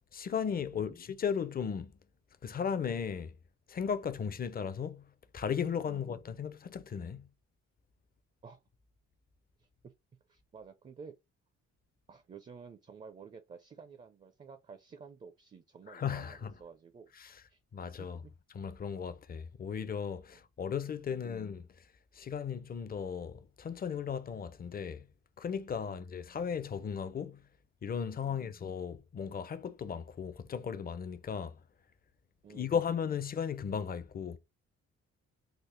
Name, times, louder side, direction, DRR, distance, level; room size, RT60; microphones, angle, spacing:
voice 1, 0.1-1.9 2.4-3.4 3.7-5.0 5.3-7.3 15.9-16.5 17.2-17.4 17.7-18.2 18.5-21.9 22.1-25.1 25.4-27.4 27.8-31.6 32.5-34.4, left 7 dB, 30° left, 0.5 m, -36 dB
voice 2, 9.6-9.9 10.3-11.1 12.1-17.6 18.0-18.3 20.3-20.4 21.1-21.4 25.9-26.1 28.2-28.6 32.4-32.7, right 5 dB, 25° right, 0.4 m, -52 dB
3.5 x 2.0 x 3.2 m
cardioid pair, 90°, 30 cm